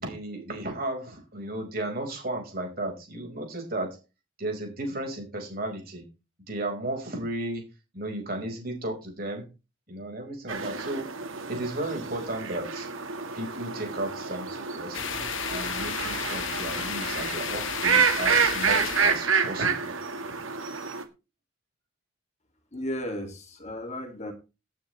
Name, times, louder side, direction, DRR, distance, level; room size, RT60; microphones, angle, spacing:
voice 1, 0.0-4.0 4.4-6.0 6.5-7.6 7.9-9.4 9.9-11.1 11.5-12.9 13.3-15.0 15.5-19.9, right 1 dB, 45° right, 3 dB, 5.1 m, -34 dB
sound 1, 10.5-21.0, right 5 dB, 85° right, 1.8 m, -28 dB
sound 2, 14.9-19.3, left 7 dB, 75° left, 1.5 m, -33 dB
voice 2, 22.7-24.3, equal, 35° left, 5 dB, 2.5 m, -34 dB
18.0 x 9.4 x 3.3 m, 0.29 s
head